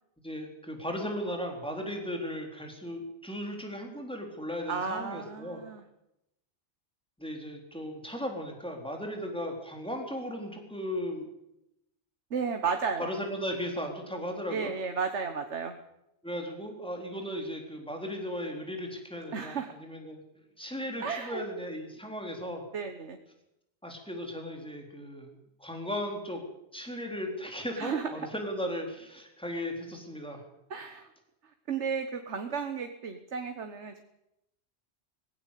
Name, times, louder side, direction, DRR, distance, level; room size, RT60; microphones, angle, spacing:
voice 1, 0.2-5.6 7.2-11.3 13.0-14.7 16.2-20.2 20.6-22.6 23.8-26.4 26.7-30.4, equal, 5° left, 2 dB, 3.8 m, -36 dB
voice 2, 4.7-5.8 12.3-13.1 14.5-15.8 19.3-19.7 21.0-21.4 22.7-23.2 27.8-28.1 30.7-31.1 31.7-34.0, right 5 dB, 90° right, 6 dB, 1.6 m, -33 dB
19.5 x 16.0 x 8.4 m, 0.87 s
omnidirectional pair, 1.1 m